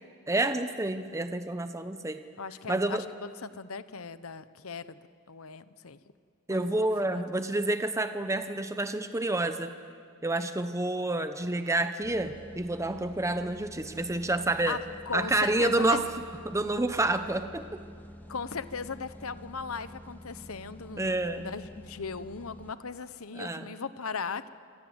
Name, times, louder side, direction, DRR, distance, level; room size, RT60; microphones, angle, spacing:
voice 1, 0.3-2.2 2.7-3.0 6.5-9.7 10.2-14.8 15.1-16.0 16.4-17.6 21.0-21.5 23.3-23.7, right 2 dB, 15° right, 9 dB, 0.9 m, -28 dB
voice 2, 2.4-5.0 5.3-6.0 6.5-7.2 14.7-14.8 15.1-16.0 18.3-24.5, left 5 dB, 75° left, 13 dB, 1.1 m, -38 dB
sound 1, 12.0-22.7, equal, 10° left, 1.9 m, -48 dB
27.5 x 25.5 x 8.1 m, 2.2 s
head